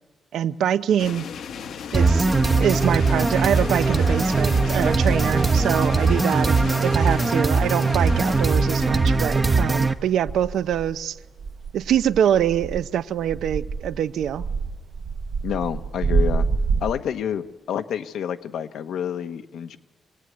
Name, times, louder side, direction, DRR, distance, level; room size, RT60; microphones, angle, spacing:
voice 1, 0.3-1.2 1.9-2.3 2.6-11.2 11.7-14.4, right 10 dB, 80° right, 13 dB, 0.7 m, -24 dB
sound 1, 1.0-10.0, left 7 dB, 65° left, 1.1 m, -36 dB
sound 2, 1.9-9.9, right 3 dB, 15° right, 0.8 m, -20 dB
sound 3, 7.1-7.2 7.6-16.9, right 4 dB, 55° right, 0.9 m, -28 dB
voice 2, 15.4-16.5 16.8-19.8, left 8 dB, 90° left, 8 dB, 1.2 m, -28 dB
24.5 x 18.0 x 9.4 m, 1.2 s
wide cardioid pair, 180°, 0 cm